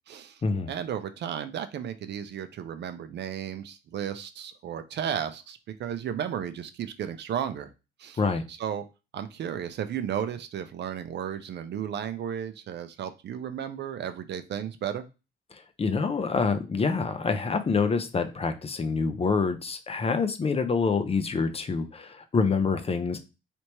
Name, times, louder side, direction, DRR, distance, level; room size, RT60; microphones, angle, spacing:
voice 1, 0.1-0.4 0.7-7.7 8.0-8.2 8.5-8.8 9.1-15.0, right 9 dB, 60° right, 0.5 m, -34 dB
voice 2, 15.5-23.2, left 4 dB, 30° left, 0.6 m, -26 dB
3.4 x 3.0 x 2.9 m
cardioid pair, 90°, 20 cm